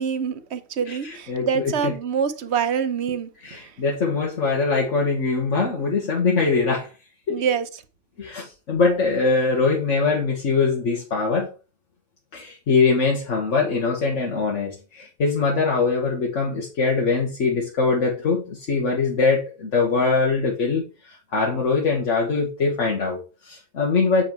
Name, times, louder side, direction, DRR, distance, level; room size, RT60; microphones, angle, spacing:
voice 1, 0.0-3.6 7.3-7.7, right 7 dB, 65° right, 1.0 m, -25 dB
voice 2, 0.8-1.9 3.4-6.9 7.3-7.4 8.2-11.5 12.3-24.2, left 4 dB, 85° left, 1.6 m, -22 dB
7.7 x 4.5 x 4.5 m
omnidirectional pair, 1.2 m